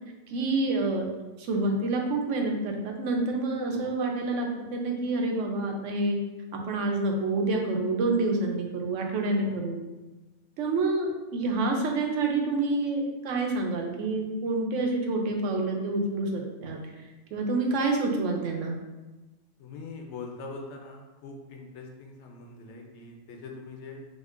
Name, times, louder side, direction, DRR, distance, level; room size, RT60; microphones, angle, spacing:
voice 1, 0.3-1.1 1.4-6.2 6.7-9.8 10.6-16.8 17.3-18.8, right 2 dB, 90° right, 2 dB, 0.9 m, -28 dB
voice 2, 19.6-24.0, left 3 dB, 75° left, 1 dB, 0.9 m, -43 dB
4.9 x 2.1 x 2.5 m, 1.1 s
omnidirectional pair, 1.2 m